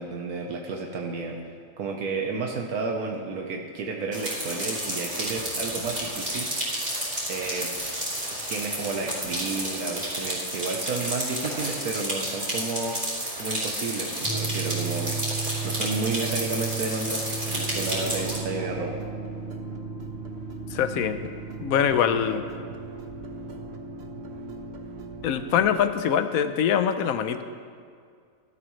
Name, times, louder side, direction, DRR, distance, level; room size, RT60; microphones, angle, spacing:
voice 1, 0.0-6.7 7.3-7.7 8.5-13.0 13.4-15.2 15.6-19.0, right 4 dB, 85° right, 1 dB, 1.5 m, -31 dB
sound 1, 4.1-18.4, right 1 dB, 25° right, 3.6 m, -31 dB
sound 2, 14.2-25.1, right 6 dB, 5° left, 1.1 m, -36 dB
sound 3, 17.5-25.8, right 2 dB, 50° right, 1.2 m, -39 dB
voice 2, 20.7-21.3 21.6-22.4 25.2-27.4, left 8 dB, 75° left, 10 dB, 1.1 m, -23 dB
19.0 x 12.5 x 3.2 m, 2.2 s
omnidirectional pair, 1.5 m